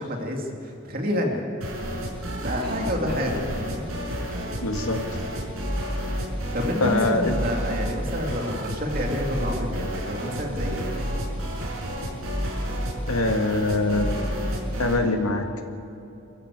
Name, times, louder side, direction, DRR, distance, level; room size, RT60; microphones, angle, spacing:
voice 1, 0.0-1.4 2.4-3.9 6.5-11.0, left 1 dB, 45° right, 1 dB, 2.7 m, -28 dB
sound 1, 1.6-15.0, equal, 80° right, 6.6 m, -30 dB
voice 2, 4.6-5.0 6.8-7.3 13.1-14.3 14.8-15.5, left 2 dB, 90° left, 4 dB, 2.0 m, -23 dB
26.0 x 14.0 x 8.3 m, 2.9 s
head